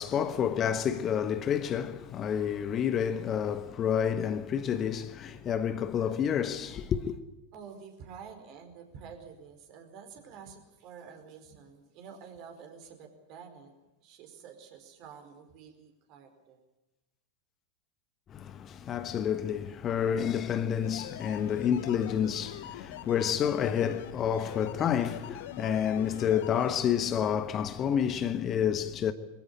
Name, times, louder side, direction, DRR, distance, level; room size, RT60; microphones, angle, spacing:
voice 1, 0.0-7.2 18.3-29.1, left 8 dB, 30° left, 1.3 m, -29 dB
voice 2, 7.5-13.7 14.0-16.6, right 6 dB, 40° right, 4.7 m, -49 dB
sound 1, 20.8-26.7, left 12 dB, 55° left, 1.0 m, -44 dB
23.0 x 16.0 x 10.0 m
figure-of-eight pair, 90°, 0 cm